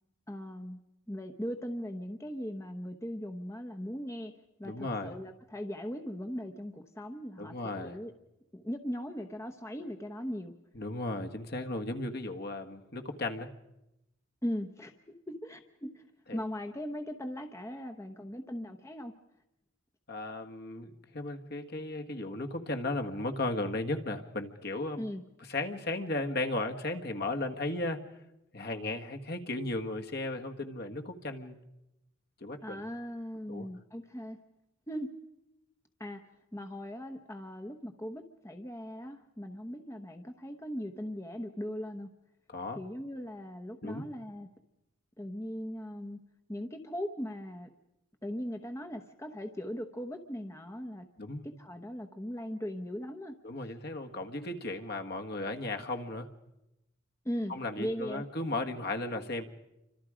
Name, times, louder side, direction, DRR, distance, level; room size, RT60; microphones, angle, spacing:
voice 1, 0.3-0.8 1.1-4.3 4.6-8.1 8.5-10.5 14.4-16.0 16.3-19.1 25.0-25.2 32.6-34.4 34.9-35.1 36.0-36.2 36.5-42.1 42.8-44.5 45.2-46.2 46.5-47.7 48.2-51.0 51.6-53.4 57.2-58.2, equal, 15° left, 6 dB, 0.9 m, -39 dB
voice 2, 4.6-5.2 7.4-8.0 10.8-13.5 16.3-16.4 20.1-25.0 25.5-28.0 28.5-31.6 32.4-32.9 33.5-33.7 42.5-42.8 43.8-44.1 51.2-51.4 53.4-56.3 57.5-59.4, left 2 dB, 50° left, 5 dB, 1.6 m, -35 dB
28.5 x 25.5 x 5.0 m, 0.89 s
head